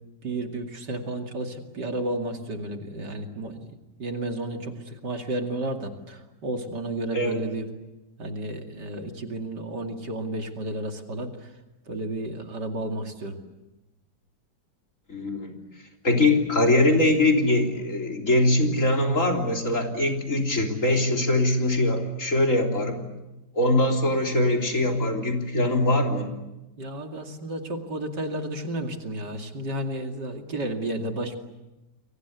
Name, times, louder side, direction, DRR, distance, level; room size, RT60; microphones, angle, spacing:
voice 1, 0.2-7.7 8.2-11.5 11.9-13.4 26.8-31.3, right 1 dB, 75° right, 4 dB, 3.1 m, -32 dB
voice 2, 15.1-15.5 16.0-23.1 23.5-26.3, left 1 dB, 45° left, 2 dB, 4.0 m, -22 dB
29.5 x 23.5 x 8.2 m, 1.0 s
omnidirectional pair, 1.9 m